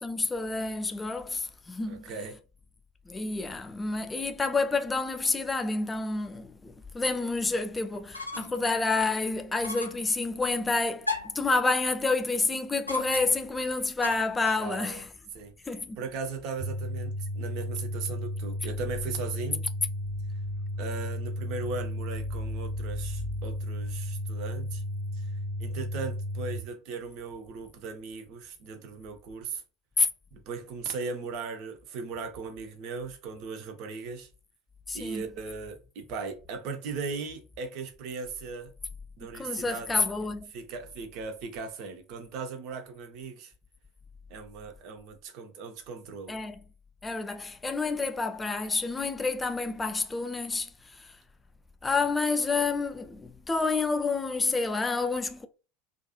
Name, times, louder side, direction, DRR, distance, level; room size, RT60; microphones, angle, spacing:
voice 1, 0.0-2.3 3.1-15.1 15.7-16.0 30.0-30.1 34.9-35.3 39.3-40.5 46.3-46.6 47.0-51.2 51.8-55.5, left 3 dB, 15° left, 0.4 m, -29 dB
voice 2, 1.9-2.4 14.6-15.0 15.3-15.5 16.0-19.7 20.8-24.8 25.1-25.3 25.6-29.6 30.3-34.3 34.9-38.7 39.2-39.9 40.5-43.5 44.3-46.4, right 4 dB, 50° right, 0.6 m, -38 dB
sound 1, 8.1-8.7 9.0-9.1 9.6-10.1 11.0-11.5 12.9-13.5 14.0-14.7, left 2 dB, 90° left, 0.3 m, -36 dB
sound 2, 16.6-26.6, left 1 dB, 80° right, 0.9 m, -34 dB
2.5 x 2.2 x 2.8 m
figure-of-eight pair, 75°, 0 cm